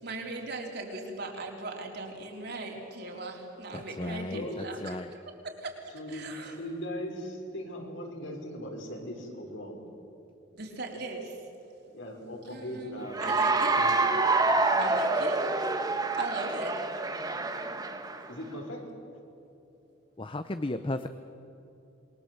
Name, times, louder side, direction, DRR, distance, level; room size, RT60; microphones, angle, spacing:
voice 1, 0.0-5.8 6.1-6.6 10.5-11.5 12.5-13.8 14.8-15.7 16.2-16.9, right 2 dB, 55° right, 0 dB, 4.0 m, -39 dB
voice 2, 3.7-4.5 4.8-5.1 20.2-21.1, left 2 dB, 25° left, 10 dB, 0.7 m, -34 dB
voice 3, 4.3-4.8 5.9-9.8 11.9-14.0 14.5-14.8 18.3-18.8, equal, 70° left, 1 dB, 5.4 m, -39 dB
Cheering / Applause, 13.1-18.3, right 3 dB, 20° right, 1.3 m, -27 dB
27.5 x 22.0 x 7.9 m, 2.9 s
head